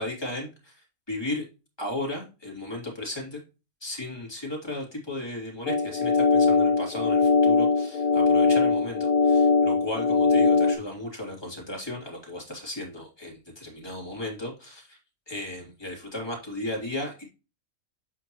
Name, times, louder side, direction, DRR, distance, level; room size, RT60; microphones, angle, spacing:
voice 1, 0.0-1.4 1.8-3.4 3.8-15.0 15.3-17.3, left 1 dB, 15° left, -1 dB, 2.9 m, -35 dB
sound 1, 5.7-10.7, left 4 dB, 70° left, 1.4 m, -21 dB
8.2 x 6.3 x 3.0 m, 0.30 s
omnidirectional pair, 1.5 m